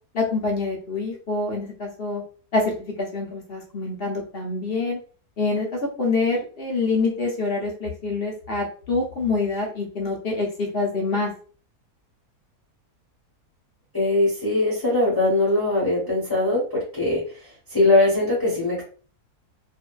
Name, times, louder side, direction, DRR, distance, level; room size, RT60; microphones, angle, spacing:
voice 1, 0.1-2.2 2.5-5.0 5.4-11.3, left 3 dB, 55° left, -1 dB, 0.7 m, -26 dB
voice 2, 13.9-18.8, left 2 dB, 15° left, -8 dB, 0.9 m, -21 dB
2.7 x 2.5 x 2.2 m, 0.41 s
omnidirectional pair, 1.7 m